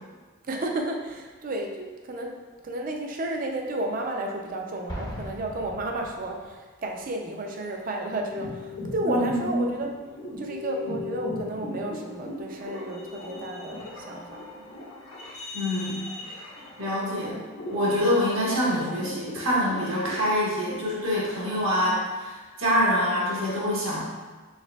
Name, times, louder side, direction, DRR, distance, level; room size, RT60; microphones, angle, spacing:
voice 1, 0.5-2.3 2.6-9.9 10.4-14.6 17.3-17.4 17.9-18.2, right 1 dB, 40° right, 2 dB, 0.4 m, -32 dB
Explosion, 4.9-6.7, equal, 20° left, 0.5 m, -39 dB
sound 1, 8.1-20.2, left 2 dB, 70° left, 0.8 m, -38 dB
voice 2, 9.0-9.6 15.5-16.0 16.8-17.4 17.7-24.0, equal, 80° right, -7 dB, 1.3 m, -25 dB
4.6 x 3.4 x 2.3 m, 1.3 s
head